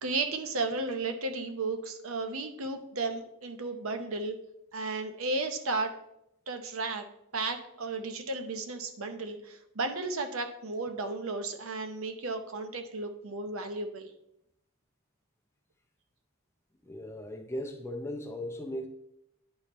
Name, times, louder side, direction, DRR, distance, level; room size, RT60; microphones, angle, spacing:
voice 1, 0.0-4.4 4.7-6.0 6.5-7.1 7.3-14.1, right 3 dB, 60° right, 0.7 m, -34 dB
voice 2, 16.8-18.9, left 1 dB, 10° left, 0.5 m, -37 dB
10.0 x 4.4 x 3.0 m
head